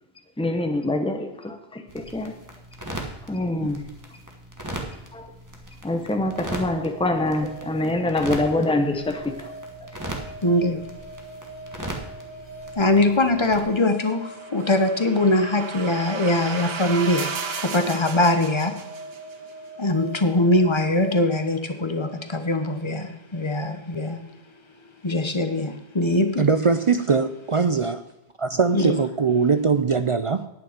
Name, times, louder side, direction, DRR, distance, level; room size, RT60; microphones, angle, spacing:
voice 1, 0.4-2.3 3.3-3.9 4.8-5.3 5.8-9.5 9.8-9.9, left 2 dB, 5° left, 4 dB, 1.1 m, -25 dB
sound 1, 1.9-13.6, right 1 dB, 20° right, 1.7 m, -38 dB
sound 2, 6.2-21.2, right 2 dB, 55° left, 2.1 m, -42 dB
voice 2, 10.4-10.8 12.8-17.3 17.6-18.7 19.8-24.2 25.0-26.5 28.7-29.0, left 2 dB, 30° left, 7 dB, 1.0 m, -22 dB
sound 3, 14.1-19.3, right 5 dB, 75° right, 1.1 m, -35 dB
voice 3, 26.4-28.0 28.4-30.5, right 5 dB, 45° right, 10 dB, 0.4 m, -21 dB
10.0 x 9.0 x 5.1 m, 0.95 s
omnidirectional pair, 1.0 m